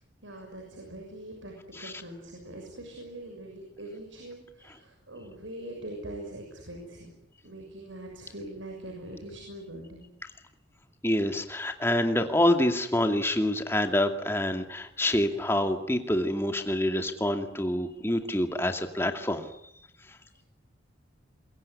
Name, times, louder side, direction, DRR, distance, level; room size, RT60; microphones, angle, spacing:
voice 1, 0.2-7.1 7.4-10.1, right 1 dB, 80° right, 2 dB, 6.7 m, -42 dB
voice 2, 11.0-19.5 20.1-20.2, left 1 dB, 15° left, 5 dB, 2.4 m, -27 dB
26.5 x 23.0 x 9.7 m, 0.73 s
head